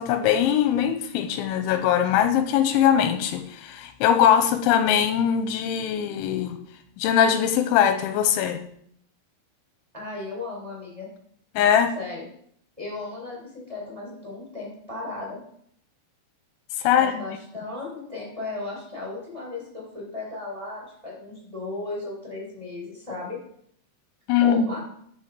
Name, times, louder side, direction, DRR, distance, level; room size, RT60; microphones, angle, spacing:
voice 1, 0.0-6.6 7.0-8.6 11.6-11.9 16.8-17.2 24.3-24.7, left 9 dB, 90° left, 8 dB, 3.1 m, -21 dB
voice 2, 9.9-11.1 11.9-12.3 12.8-15.4 16.8-23.4 24.4-24.8, left 3 dB, 5° right, -4 dB, 3.7 m, -35 dB
12.0 x 6.0 x 5.1 m, 0.67 s
omnidirectional pair, 5.5 m